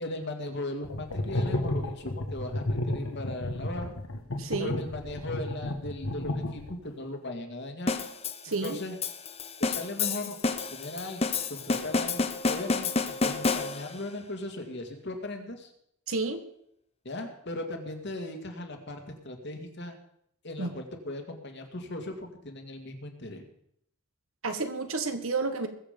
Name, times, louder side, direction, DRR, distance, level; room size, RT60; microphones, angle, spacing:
voice 1, 0.0-3.9 4.6-8.0 8.6-9.0 9.6-10.4 10.7-12.9 13.2-15.7 17.0-20.0 20.4-23.5, left 1 dB, 50° left, 5 dB, 2.0 m, -38 dB
sound 1, 0.8-6.9, left 1 dB, 75° left, 1.5 m, -32 dB
voice 2, 4.4-4.8 8.4-8.8 16.1-16.4 20.6-20.7 24.4-25.7, right 3 dB, 65° right, 8 dB, 1.4 m, -30 dB
sound 2, 7.9-14.1, left 4 dB, 30° left, 0.8 m, -30 dB
20.5 x 7.5 x 5.2 m, 0.72 s
head